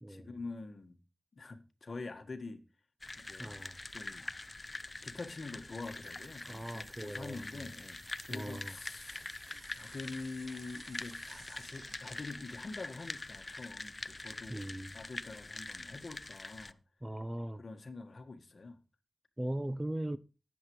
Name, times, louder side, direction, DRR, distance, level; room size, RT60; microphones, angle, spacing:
voice 1, 0.1-1.0 1.3-2.6 3.1-3.6 3.9-4.3 5.0-9.3 9.8-14.6 14.9-16.8 17.6-18.8, left 3 dB, 55° left, 1.7 m, -46 dB
sound 1, 3.0-16.7, left 2 dB, 35° left, 0.6 m, -45 dB
voice 2, 3.4-3.8 6.5-7.7 8.3-8.8 14.5-15.0 17.0-17.7 19.4-20.2, right 1 dB, 15° right, 0.6 m, -39 dB
sound 2, 5.8-12.8, right 4 dB, 70° right, 0.7 m, -59 dB
18.0 x 7.5 x 3.1 m
wide cardioid pair, 75°, 0 cm